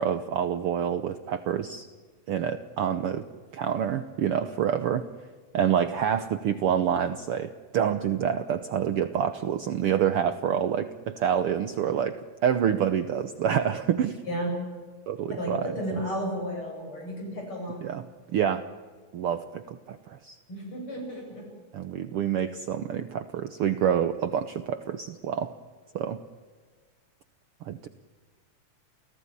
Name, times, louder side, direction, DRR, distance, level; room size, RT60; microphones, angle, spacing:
voice 1, 0.0-1.9 2.3-3.2 3.5-5.1 5.5-14.2 15.1-15.6 17.8-18.7 19.1-20.4 21.7-25.5 25.9-26.2 27.6-27.9, right 9 dB, 65° right, 10 dB, 1.5 m, -27 dB
voice 2, 14.3-14.6 15.3-17.9 20.5-21.5, equal, 45° left, 1 dB, 9.0 m, -33 dB
29.5 x 17.0 x 9.9 m, 1.5 s
omnidirectional pair, 3.3 m